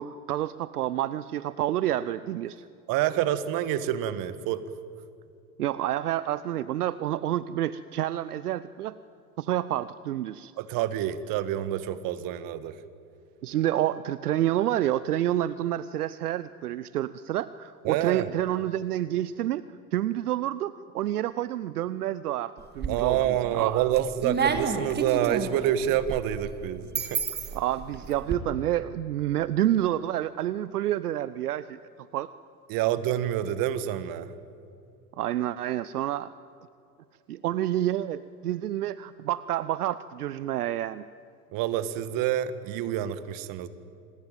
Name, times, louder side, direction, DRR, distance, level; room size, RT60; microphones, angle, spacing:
voice 1, 0.0-2.7 5.6-8.9 9.4-10.5 13.4-19.6 19.9-24.1 27.5-31.8 32.1-32.3 35.2-36.3 37.3-41.0, right 12 dB, 75° right, 16 dB, 0.7 m, -29 dB
voice 2, 2.9-4.6 10.6-12.7 17.8-18.3 22.9-27.2 32.7-34.3 41.5-43.7, right 11 dB, 45° right, 14 dB, 1.6 m, -27 dB
sound 1, 22.6-23.3 23.7-28.4, right 5 dB, 20° right, 2.3 m, -31 dB
27.0 x 19.5 x 9.2 m, 2.5 s
figure-of-eight pair, 80°, 45 cm